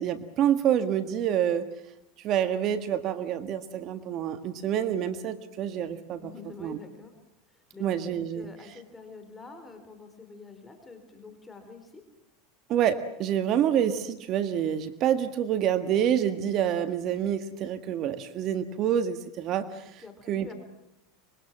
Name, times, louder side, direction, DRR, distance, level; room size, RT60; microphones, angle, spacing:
voice 1, 0.0-1.7 2.2-6.3 6.6-6.8 7.8-8.4 12.7-20.0 20.3-20.5, right 9 dB, 45° right, 10 dB, 1.6 m, -27 dB
voice 2, 6.2-7.1 7.5-7.8 8.3-12.0 20.0-20.5, left 4 dB, 15° left, 6 dB, 4.4 m, -47 dB
25.0 x 23.0 x 7.6 m, 0.84 s
supercardioid pair, 130°, 0 cm